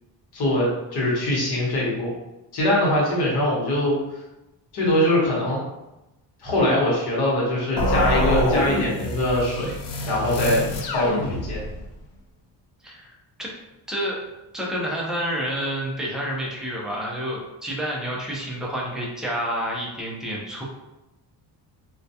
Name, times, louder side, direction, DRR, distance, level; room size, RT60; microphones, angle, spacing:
voice 1, 0.3-2.1 2.5-4.0 4.7-5.6 6.4-9.7 10.1-10.7 10.9-11.6, left 1 dB, 60° left, -4 dB, 1.0 m, -22 dB
sound 1, 7.8-11.9, left 1 dB, 80° left, 0.5 m, -25 dB
voice 2, 12.8-13.5 13.9-14.2 14.5-20.6, equal, ahead, -3 dB, 0.3 m, -29 dB
2.2 x 2.2 x 2.6 m, 0.96 s
cardioid pair, 150°, 44 cm